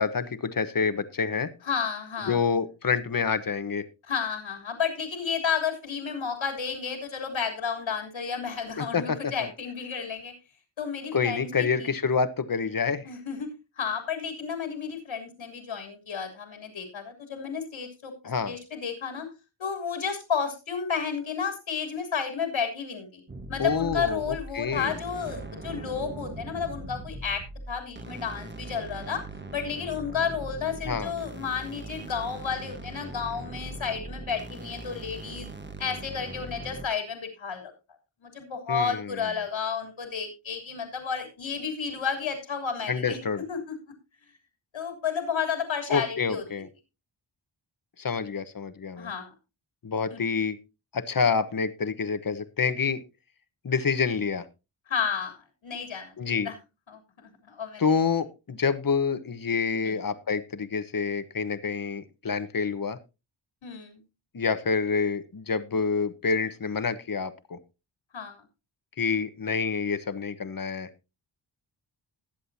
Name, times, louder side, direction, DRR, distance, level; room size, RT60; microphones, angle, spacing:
voice 1, 0.0-1.5 2.3-3.9 8.8-9.5 11.1-13.1 18.2-18.6 23.6-24.9 30.8-31.1 38.7-39.2 42.9-43.4 45.9-46.7 48.0-49.1 49.8-50.6 50.9-53.0 53.6-54.4 56.2-56.5 57.8-63.0 64.3-67.6 69.0-70.9, left 5 dB, 45° left, 12 dB, 1.2 m, -27 dB
voice 2, 1.6-2.4 4.1-10.3 10.8-11.9 13.0-13.5 13.8-18.1 18.5-19.3 19.6-23.2 23.5-29.2 29.5-35.5 35.8-37.7 38.2-43.2 43.5-43.9 44.7-46.4 49.0-49.3 50.1-50.2 54.9-56.5 56.9-57.8 59.8-60.0 63.6-64.0 68.1-68.4, left 6 dB, 80° left, 4 dB, 3.4 m, -32 dB
sound 1, 23.3-36.9, right 2 dB, 25° right, 1.3 m, -40 dB
20.5 x 7.8 x 2.8 m, 0.27 s
cardioid pair, 65°, 47 cm